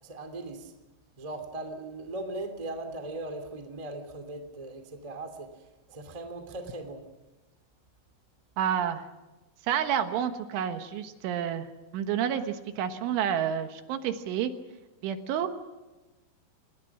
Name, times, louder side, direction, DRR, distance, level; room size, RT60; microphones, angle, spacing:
voice 1, 0.0-0.7 1.2-5.5 5.9-7.0, right 2 dB, 20° right, 6 dB, 1.1 m, -39 dB
voice 2, 8.6-9.1 9.7-11.7 11.9-14.5 15.0-15.5, right 9 dB, 75° right, 7 dB, 3.6 m, -29 dB
28.5 x 19.5 x 6.1 m, 1.1 s
omnidirectional pair, 5.9 m